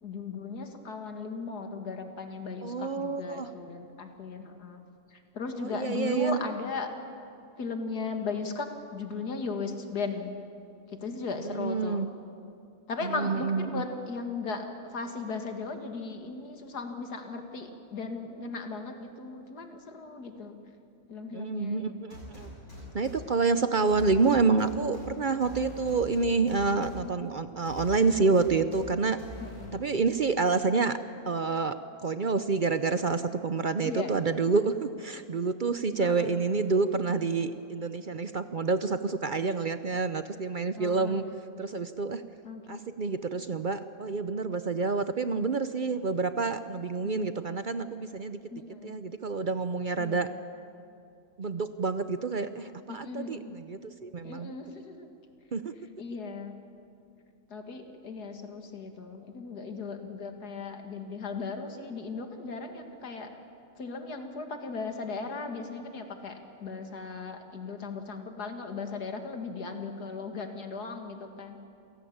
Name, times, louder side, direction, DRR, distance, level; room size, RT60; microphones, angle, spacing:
voice 1, 0.0-4.8 5.1-6.9 7.6-10.3 10.9-12.0 12.9-20.5 21.1-22.0 26.8-27.1 29.4-29.7 33.8-34.1 36.0-36.4 40.8-41.3 42.4-42.8 47.0-47.4 48.5-49.0 50.0-50.3 52.9-53.5 54.2-55.1 56.0-56.6 57.5-63.3 63.8-71.6, left 4 dB, 80° left, 5 dB, 2.5 m, -37 dB
voice 2, 2.6-3.5 5.6-6.4 11.4-12.1 13.0-13.8 21.3-22.5 22.9-29.2 29.7-31.0 31.3-41.2 41.6-42.2 42.7-48.4 48.8-50.3 51.4-54.5 55.5-55.7, right 4 dB, 50° right, 11 dB, 0.6 m, -28 dB
sound 1, 22.1-23.2 23.9-25.1 25.4-26.9 27.6-28.8 29.2-29.7, left 1 dB, 65° left, 7.9 m, -44 dB
27.5 x 17.5 x 8.7 m, 2.5 s
omnidirectional pair, 1.7 m